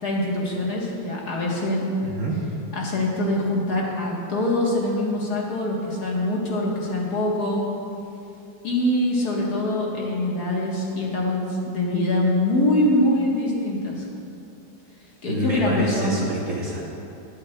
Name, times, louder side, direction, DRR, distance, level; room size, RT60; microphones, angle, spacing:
voice 1, 0.0-1.9 2.7-7.7 8.6-14.1 15.2-16.1, left 1 dB, 55° left, -3 dB, 1.8 m, -24 dB
voice 2, 2.0-2.4 15.3-16.8, equal, 50° right, -3 dB, 1.2 m, -27 dB
21.5 x 7.7 x 2.2 m, 2.8 s
omnidirectional pair, 2.1 m